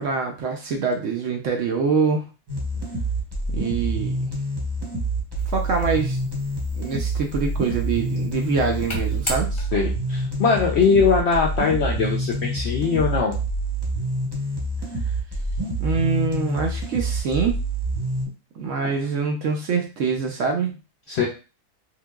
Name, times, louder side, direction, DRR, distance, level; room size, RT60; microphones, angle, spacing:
voice 1, 0.0-2.3 3.5-4.2 5.5-6.2 6.7-9.5 15.8-17.6 18.6-20.8, right 5 dB, 65° right, 2 dB, 0.8 m, -24 dB
sound 1, 2.5-18.3, right 2 dB, 25° right, 0.6 m, -27 dB
sound 2, 5.4-10.1, equal, 25° left, 0.6 m, -37 dB
voice 2, 9.7-13.4 21.1-21.3, left 5 dB, 70° left, -1 dB, 0.6 m, -21 dB
3.7 x 2.7 x 2.3 m, 0.32 s
omnidirectional pair, 1.6 m